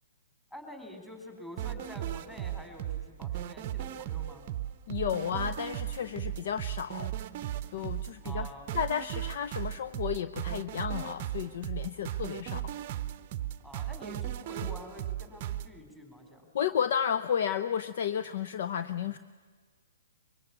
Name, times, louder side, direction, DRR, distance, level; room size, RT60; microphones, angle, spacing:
voice 1, 0.5-4.5 8.2-8.7 13.6-16.5, left 1 dB, 10° left, 3 dB, 4.1 m, -47 dB
sound 1, 1.6-15.7, right 12 dB, 40° right, 0.7 m, -36 dB
voice 2, 4.9-7.1 7.7-8.5 8.7-12.7 16.5-19.2, left 8 dB, 50° left, 11 dB, 0.7 m, -32 dB
24.0 x 22.5 x 8.4 m, 1.5 s
figure-of-eight pair, 120°, 0 cm